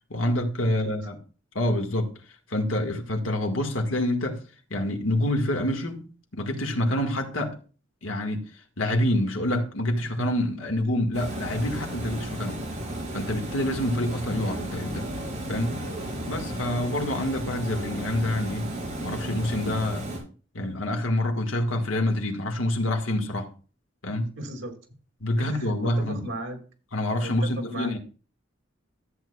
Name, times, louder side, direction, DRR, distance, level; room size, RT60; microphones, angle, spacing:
voice 1, 0.1-1.2 1.6-2.1 2.5-4.4 4.7-7.6 8.0-8.4 8.8-12.7 13.1-15.1 15.5-15.8 16.3-18.7 19.0-20.1 20.5-23.5 24.0-24.3 25.2-26.2 26.9-28.0, left 1 dB, 85° left, 1.7 m, -27 dB
Water, 11.1-20.2, right 1 dB, 35° right, 3.9 m, -34 dB
voice 2, 24.4-24.7 25.4-26.6 27.2-28.0, right 1 dB, 80° right, 2.3 m, -36 dB
13.5 x 8.1 x 2.3 m
head